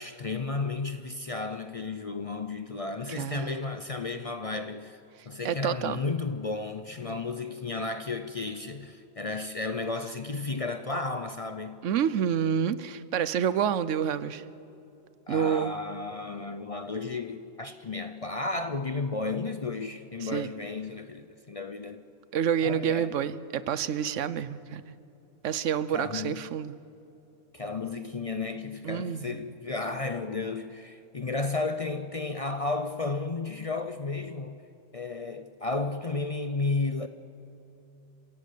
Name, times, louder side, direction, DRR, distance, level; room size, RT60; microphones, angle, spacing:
voice 1, 0.0-5.0 5.3-11.8 15.3-22.0 22.6-23.1 25.9-26.5 27.5-34.6 34.9-37.1, left 3 dB, 40° left, 0.5 m, -33 dB
voice 2, 3.1-3.5 5.4-6.0 11.8-14.4 15.3-15.7 20.2-20.5 22.3-24.9 25.4-26.8 28.8-29.4, right 8 dB, 80° right, 1.1 m, -28 dB
26.5 x 16.5 x 8.4 m
omnidirectional pair, 1.3 m